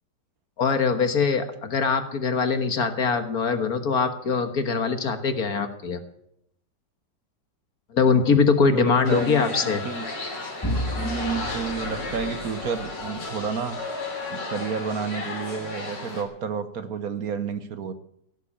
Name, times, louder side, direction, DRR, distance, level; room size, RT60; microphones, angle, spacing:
voice 1, 0.6-6.0 7.9-9.8, left 5 dB, 55° left, 8 dB, 1.9 m, -22 dB
voice 2, 8.7-10.1 10.9-13.8 14.3-17.9, right 6 dB, 60° right, 11 dB, 1.3 m, -31 dB
sound 1, 9.0-16.2, left 2 dB, 75° left, 3.9 m, -34 dB
Vehicle / Engine, 10.6-13.6, left 1 dB, 10° left, 1.9 m, -32 dB
16.5 x 8.2 x 8.6 m, 0.74 s
omnidirectional pair, 1.9 m